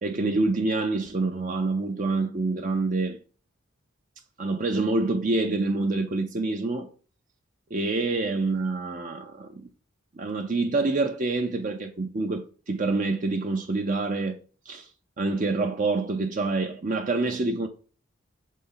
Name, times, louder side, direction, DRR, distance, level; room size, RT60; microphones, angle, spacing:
voice 1, 0.0-3.2 4.4-6.9 7.7-9.7 10.2-14.4 14.7-14.9 15.2-17.7, right 3 dB, 35° right, 0.5 m, -26 dB
6.3 x 4.1 x 3.9 m
head